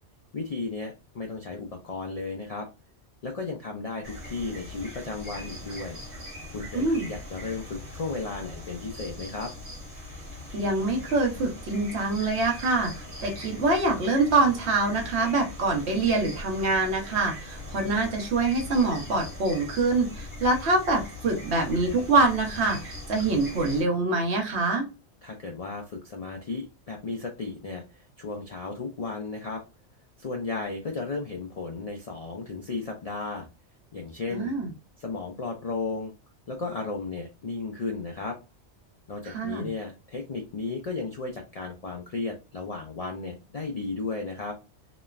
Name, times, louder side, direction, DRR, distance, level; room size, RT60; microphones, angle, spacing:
voice 1, 0.3-2.7 3.2-6.0 6.5-9.5 25.2-29.6 30.2-33.5 33.9-34.5 35.0-36.1 36.5-38.4 39.1-44.6, left 3 dB, 60° left, 2 dB, 0.4 m, -34 dB
sound 1, 4.0-23.8, left 1 dB, 55° right, 1.3 m, -41 dB
voice 2, 6.7-7.1 10.5-12.9 13.2-24.9 34.3-34.7 39.3-39.7, right 3 dB, 70° right, 2 dB, 1.1 m, -25 dB
3.0 x 2.0 x 2.3 m, 0.28 s
omnidirectional pair, 1.2 m